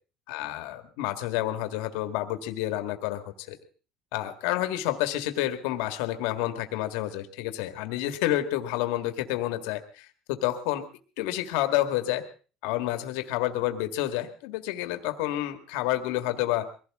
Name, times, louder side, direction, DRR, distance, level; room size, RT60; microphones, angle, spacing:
voice 1, 0.3-3.6 4.1-10.9 11.2-12.3 12.6-16.7, left 14 dB, 90° left, 8 dB, 1.8 m, -29 dB
22.5 x 16.0 x 3.7 m, 0.37 s
cardioid pair, 140°, 0 cm